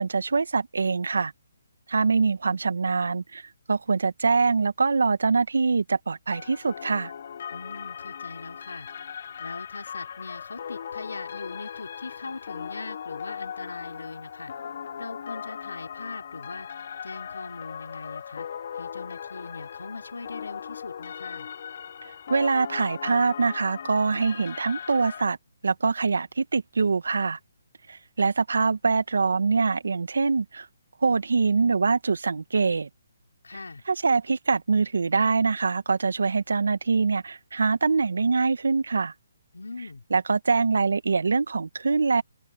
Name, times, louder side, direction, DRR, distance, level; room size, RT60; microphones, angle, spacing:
voice 1, 0.0-1.3 1.9-7.1 22.3-25.4 25.6-27.4 27.9-30.7 31.0-32.9 33.9-39.1 40.1-42.2, right 4 dB, 75° right, 2.1 m, -24 dB
sound 1, 6.3-25.2, left 8 dB, 55° left, 3.4 m, -38 dB
voice 2, 7.5-8.9 9.4-14.5 15.0-16.7 17.0-18.5 18.7-21.5 33.4-33.8 39.5-40.0, left 3 dB, 85° left, 4.0 m, -40 dB
open air
hypercardioid pair, 150°, 0 cm